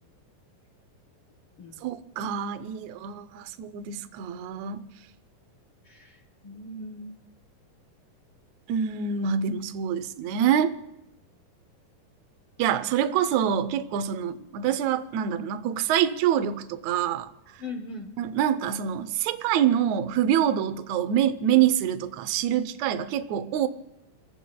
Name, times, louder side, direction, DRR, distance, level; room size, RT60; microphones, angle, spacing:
voice 1, 1.8-4.8 8.7-10.7 12.6-17.3 18.2-23.7, right 9 dB, 75° right, 1.8 m, -26 dB
voice 2, 5.8-7.2 10.2-10.3 17.6-18.1, left 2 dB, 55° left, 1.7 m, -40 dB
30.0 x 15.5 x 2.3 m
omnidirectional pair, 3.9 m